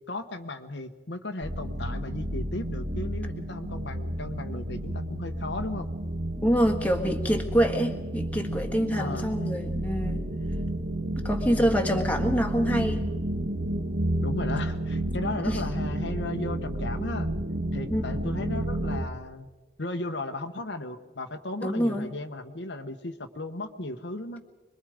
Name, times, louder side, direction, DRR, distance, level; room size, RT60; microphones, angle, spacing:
voice 1, 0.1-5.9 8.9-9.4 11.5-11.7 14.2-17.3 17.7-19.5 19.8-24.4, left 2 dB, 65° left, 6 dB, 1.2 m, -35 dB
sound 1, 1.4-19.1, right 1 dB, 60° right, 1.5 m, -31 dB
voice 2, 6.4-10.2 11.2-13.0 15.4-15.6 17.9-18.0 21.6-22.1, equal, 10° left, 2 dB, 1.7 m, -26 dB
25.5 x 22.0 x 5.1 m, 1.2 s
head